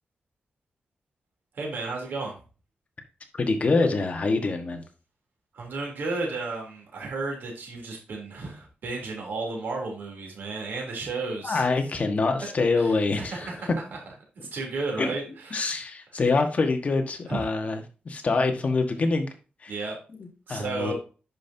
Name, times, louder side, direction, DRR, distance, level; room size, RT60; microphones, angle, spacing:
voice 1, 1.5-2.3 5.5-11.6 12.8-14.0 14.3-15.6 16.1-16.2 17.3-17.4 19.7-20.0 20.5-20.9, right 3 dB, 85° right, 0 dB, 3.3 m, -33 dB
voice 2, 3.4-4.8 11.4-13.5 15.0-15.1 15.5-17.8 18.0-19.3 19.6-19.7 20.2-20.9, left 3 dB, 40° left, 5 dB, 1.4 m, -25 dB
10.5 x 5.3 x 2.8 m, 0.34 s
wide cardioid pair, 125°, 3 cm